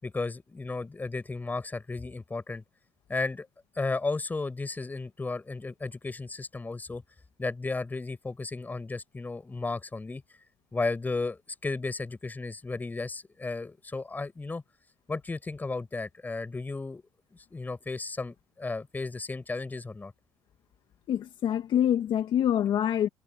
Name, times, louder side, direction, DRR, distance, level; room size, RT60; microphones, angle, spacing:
voice 1, 0.0-2.6 3.1-3.5 3.8-7.0 7.4-10.2 10.7-14.6 15.1-17.0 17.5-20.1, left 3 dB, 20° left, 5.9 m, -34 dB
voice 2, 21.1-23.1, left 10 dB, 55° left, 1.9 m, -25 dB
cardioid pair, 100°, 9 cm